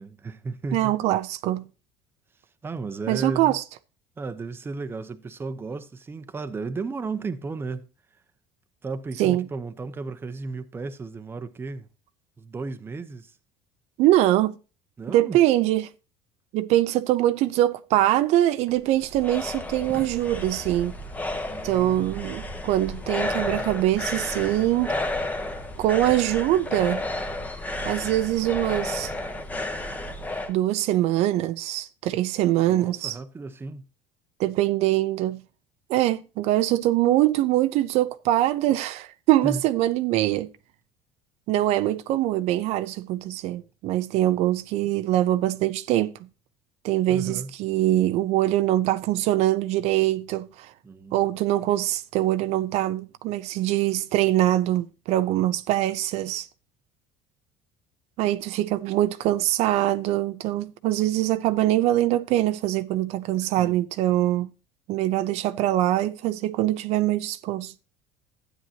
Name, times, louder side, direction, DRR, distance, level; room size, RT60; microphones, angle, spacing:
voice 1, 0.0-1.0 2.6-3.6 4.2-7.9 8.8-11.9 12.4-13.4 15.0-15.4 21.5-22.3 32.6-33.9 39.4-39.6 47.1-47.5 50.8-51.3 63.4-63.8, right 3 dB, 20° right, 0.9 m, -34 dB
voice 2, 0.7-1.7 3.1-3.6 9.2-9.5 14.0-14.6 15.1-15.9 16.5-20.9 21.6-24.9 25.8-27.0 27.8-29.1 30.5-33.2 34.4-35.4 35.9-40.5 41.5-46.2 46.8-50.7 51.1-56.5 58.2-64.5 64.9-67.7, right 14 dB, 65° right, 0.6 m, -23 dB
sound 1, 18.7-30.5, left 2 dB, 15° left, 1.2 m, -32 dB
12.5 x 9.1 x 2.8 m
cardioid pair, 125°, 12 cm